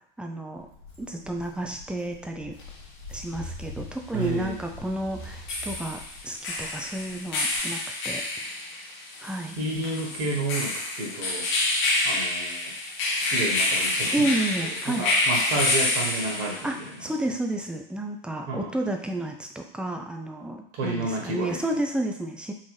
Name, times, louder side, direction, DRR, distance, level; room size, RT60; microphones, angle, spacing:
voice 1, 0.2-0.7 1.0-2.5 3.1-7.8 8.0-8.2 9.2-9.6 14.1-15.1 16.6-22.5, right 1 dB, 5° right, 3 dB, 0.3 m, -31 dB
Walk footsteps, 0.5-7.6, left 1 dB, 85° left, 1.1 m, -44 dB
sound 1, 2.6-2.7 5.2-16.8, left 2 dB, 45° left, 1.2 m, -28 dB
voice 2, 4.1-4.6 9.4-11.5 12.0-12.7 13.1-14.4 14.6-17.0 18.5-18.7 20.7-21.6, right 2 dB, 55° right, -1 dB, 1.3 m, -31 dB
3.9 x 2.5 x 3.2 m, 0.66 s
hypercardioid pair, 90°, 29 cm